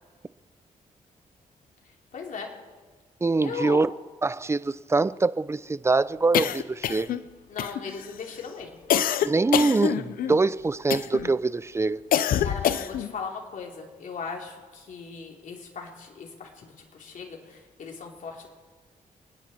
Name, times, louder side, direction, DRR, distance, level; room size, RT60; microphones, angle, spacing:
voice 1, 2.1-2.5 3.4-3.8 7.5-8.8 12.4-18.5, left 5 dB, 65° left, 3.2 m, -38 dB
voice 2, 3.2-3.9 4.2-7.1 9.2-12.0, right 3 dB, 20° right, 0.5 m, -24 dB
sound 1, 6.3-7.2 7.6-8.1 8.9-10.4 10.9-11.3 12.1-13.1, left 10 dB, 85° left, 0.6 m, -26 dB
29.0 x 10.0 x 4.3 m
cardioid pair, 85°, 14 cm